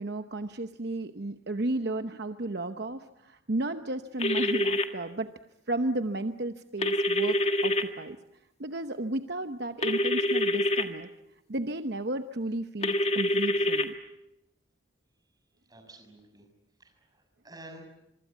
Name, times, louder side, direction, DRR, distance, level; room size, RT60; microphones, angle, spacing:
voice 1, 0.0-5.3 5.7-8.2 8.6-11.1 11.5-13.9, right 2 dB, 55° right, 8 dB, 0.9 m, -33 dB
sound 1, 4.2-4.8 6.8-7.8 9.8-10.8 12.8-13.8, left 1 dB, 30° left, 1.8 m, -26 dB
voice 2, 15.7-16.5 16.8-17.8, right 1 dB, 20° right, 4 dB, 6.3 m, -50 dB
26.5 x 23.5 x 8.4 m, 0.88 s
head